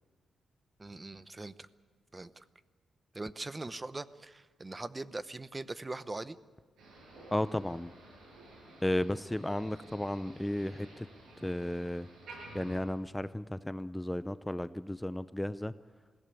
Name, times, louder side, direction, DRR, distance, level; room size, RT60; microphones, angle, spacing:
voice 1, 0.8-1.7 2.1-2.4 3.1-6.4, right 2 dB, 25° right, 15 dB, 0.8 m, -41 dB
Motor vehicle (road), 6.8-12.8, right 2 dB, 85° right, 7.7 m, -53 dB
voice 2, 7.3-7.9 8.8-11.1 11.4-12.1 12.5-15.7, left 1 dB, 10° left, 14 dB, 0.6 m, -34 dB
20.5 x 16.0 x 9.6 m, 1.5 s
cardioid pair, 75°, 0 cm